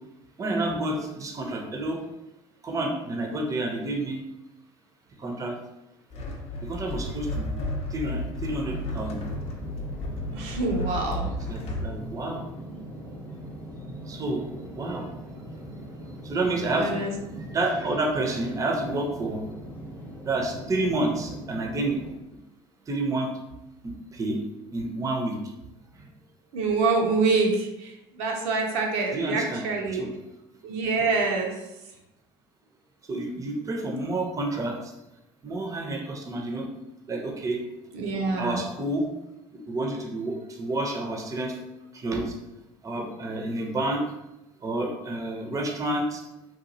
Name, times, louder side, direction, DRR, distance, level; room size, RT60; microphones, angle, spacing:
voice 1, 0.4-2.1 2.6-4.2 5.2-5.5 6.6-7.5 7.9-9.2 11.5-12.4 14.1-14.4 14.8-15.1 16.2-17.0 17.5-19.4 20.2-22.0 22.9-23.3 24.1-24.4 24.7-25.4 29.1-29.6 29.9-30.1 33.1-34.8 35.4-36.7 37.1-37.6 38.4-39.1 39.5-41.5 41.9-42.3 42.8-44.0 44.6-46.2, right 2 dB, 25° right, 2 dB, 0.6 m, -29 dB
sound 1, 6.1-11.9, left 1 dB, 50° left, 0.6 m, -33 dB
sound 2, 8.4-22.1, right 1 dB, 10° left, 0.8 m, -41 dB
voice 2, 10.3-11.3 16.7-17.1 26.5-30.1 30.6-31.5 37.9-38.6, right 3 dB, 70° right, 1 dB, 0.5 m, -26 dB
2.9 x 2.3 x 2.7 m, 0.92 s
hypercardioid pair, 70°, 14 cm